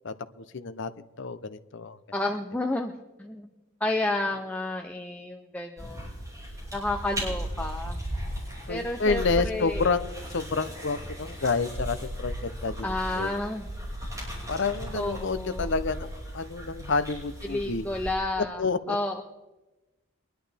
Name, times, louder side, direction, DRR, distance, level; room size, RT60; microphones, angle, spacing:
voice 1, 0.0-2.0 8.7-13.3 14.5-17.9 18.6-19.0, left 4 dB, 60° left, 12 dB, 0.6 m, -29 dB
voice 2, 2.1-2.9 3.2-3.5 3.8-6.1 6.7-8.0 8.7-9.8 12.8-13.7 14.9-15.7 17.5-19.2, left 2 dB, 5° left, 3 dB, 0.5 m, -31 dB
sound 1, 5.8-18.1, equal, 15° right, 5.5 m, -36 dB
23.5 x 11.0 x 3.4 m, 1.1 s
head